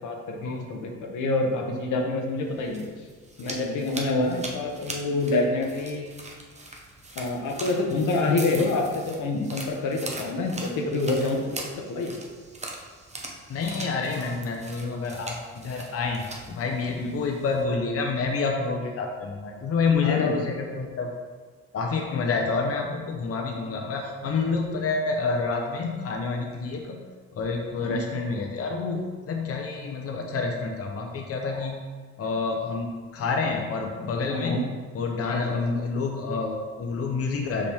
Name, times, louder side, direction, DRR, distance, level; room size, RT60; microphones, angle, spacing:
voice 1, 0.0-2.9 3.4-6.1 7.2-11.6 11.9-12.1 17.0-17.1 20.0-20.4 27.8-28.0 34.3-34.6 35.5-35.6, left 2 dB, 80° left, 1 dB, 1.0 m, -27 dB
sound 1, 2.4-17.6, right 2 dB, 20° right, 0.9 m, -41 dB
voice 2, 13.5-21.1 21.7-31.8 32.2-34.7 34.9-37.7, left 4 dB, 50° left, 1 dB, 0.8 m, -28 dB
5.3 x 5.2 x 3.4 m, 1.5 s
cardioid pair, 90°, 30 cm